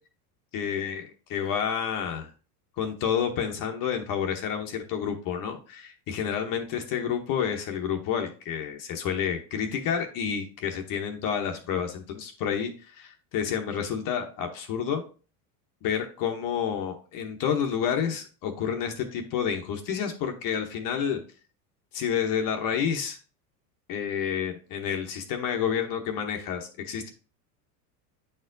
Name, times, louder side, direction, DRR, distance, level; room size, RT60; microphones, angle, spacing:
voice 1, 0.5-2.3 2.8-15.0 15.8-21.2 21.9-23.2 23.9-27.1, left 8 dB, 45° left, 4 dB, 0.9 m, -29 dB
8.6 x 4.4 x 2.6 m, 0.38 s
supercardioid pair, 135°, 48 cm